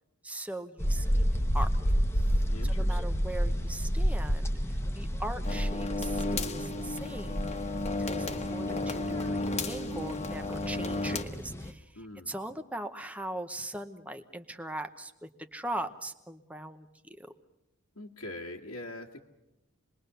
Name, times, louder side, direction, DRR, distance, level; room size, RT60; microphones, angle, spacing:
voice 1, 0.2-1.7 2.1-7.4 8.0-16.9 17.2-17.3, right 1 dB, 5° right, 7 dB, 0.9 m, -40 dB
sound 1, 0.8-11.7, equal, 10° left, 1.1 m, -31 dB
voice 2, 2.5-3.1 12.0-12.3 18.0-19.2, left 1 dB, 80° left, -2 dB, 1.8 m, -43 dB
sound 2, 5.4-11.2, left 2 dB, 30° left, 1.4 m, -33 dB
27.0 x 21.0 x 6.8 m, 0.94 s
head